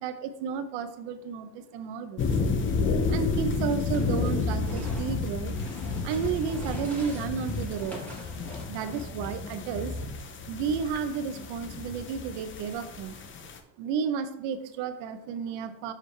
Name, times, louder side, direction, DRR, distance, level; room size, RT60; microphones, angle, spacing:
voice 1, 0.0-2.3 3.1-5.6 6.0-8.0 8.7-9.9 10.5-13.2 13.8-15.9, right 6 dB, 75° right, 9 dB, 0.8 m, -32 dB
sound 1, 2.2-13.6, left 4 dB, 30° left, 0.6 m, -31 dB
sound 2, 3.9-9.3, equal, 5° left, 1.5 m, -45 dB
7.4 x 4.9 x 3.3 m, 0.77 s
cardioid pair, 150°, 43 cm